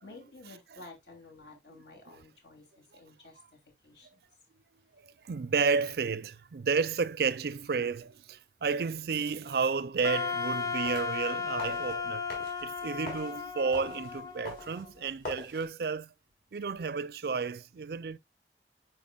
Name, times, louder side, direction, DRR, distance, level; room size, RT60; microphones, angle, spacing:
voice 1, 0.0-4.1, left 3 dB, 75° left, 3.0 m, -52 dB
voice 2, 1.7-2.2 5.0-12.2 12.6-16.1 16.5-18.2, right 5 dB, 60° right, 0.4 m, -32 dB
Wind instrument woodwind instrument, 10.0-15.1, left 5 dB, 20° left, 0.6 m, -35 dB
sound 1, 10.7-15.7, left 2 dB, 55° left, 4.2 m, -45 dB
11.0 x 4.7 x 2.3 m
head